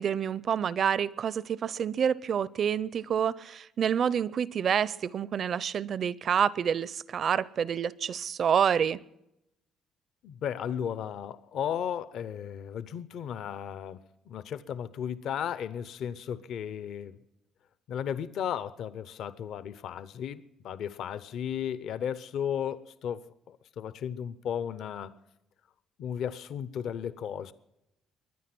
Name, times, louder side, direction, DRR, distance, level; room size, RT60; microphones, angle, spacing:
voice 1, 0.0-9.0, right 8 dB, 40° right, 0.5 m, -28 dB
voice 2, 10.2-14.0 14.3-17.2 17.9-25.1 26.0-27.5, left 9 dB, 60° left, 0.7 m, -35 dB
22.5 x 10.0 x 6.0 m
cardioid pair, 170°, 0 cm